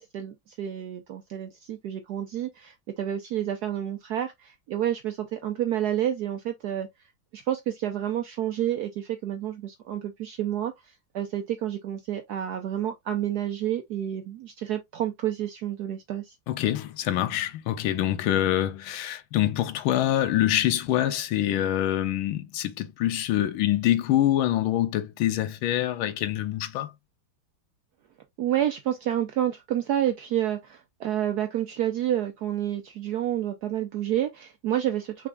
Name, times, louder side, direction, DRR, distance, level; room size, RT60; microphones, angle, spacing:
voice 1, 0.0-6.9 7.3-10.7 11.1-16.3 28.4-35.3, right 11 dB, 70° right, 0.9 m, -29 dB
voice 2, 16.5-26.9, left 12 dB, 80° left, 1.5 m, -25 dB
6.0 x 3.5 x 2.3 m
omnidirectional pair, 2.3 m